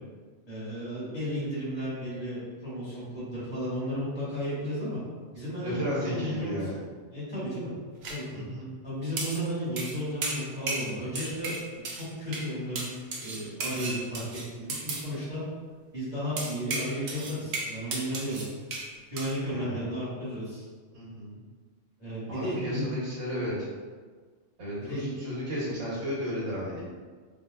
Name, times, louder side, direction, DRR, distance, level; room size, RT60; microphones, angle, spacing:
voice 1, 0.5-5.0 5.3-6.7 7.1-7.7 8.1-8.2 8.8-12.9 13.2-15.4 15.9-18.4 19.1-20.6 22.0-22.9 24.8-25.2, equal, 20° left, -11 dB, 1.4 m, -34 dB
voice 2, 5.6-6.8 8.3-8.6 19.5-19.8 20.9-21.4 22.3-23.7 24.6-26.8, equal, 80° right, -6 dB, 1.4 m, -33 dB
sound 1, 8.0-8.2 9.2-9.4 9.8-10.0 10.2-10.9 11.1-12.1 12.3-12.5 12.7-15.1 16.4-18.9 19.2-19.3, right 3 dB, 65° right, 0.8 m, -34 dB
3.7 x 2.7 x 2.3 m, 1.5 s
omnidirectional pair, 1.2 m